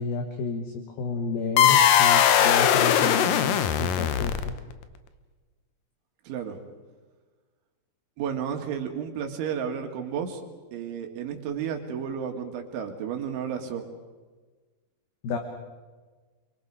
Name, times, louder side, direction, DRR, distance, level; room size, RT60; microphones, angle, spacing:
voice 1, 0.0-4.5 15.2-15.4, left 4 dB, 65° left, 4 dB, 3.0 m, -31 dB
sound 1, 1.6-4.7, left 9 dB, 80° left, 1.9 m, -20 dB
voice 2, 6.3-6.7 8.2-10.4 10.7-13.9, right 8 dB, 90° right, 3 dB, 4.4 m, -32 dB
29.0 x 23.5 x 4.8 m, 1.4 s
omnidirectional pair, 5.3 m